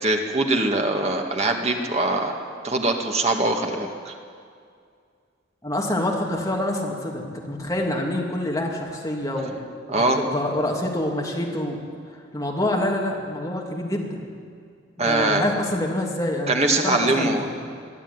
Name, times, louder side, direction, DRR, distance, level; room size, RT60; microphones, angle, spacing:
voice 1, 0.0-4.1 9.9-10.2 15.0-15.5 16.5-17.5, right 2 dB, 35° right, 3 dB, 2.0 m, -22 dB
voice 2, 5.6-9.6 9.9-11.8 12.1-14.3 15.0-17.7, left 1 dB, 15° left, -1 dB, 2.9 m, -27 dB
22.5 x 12.0 x 9.8 m, 2.2 s
head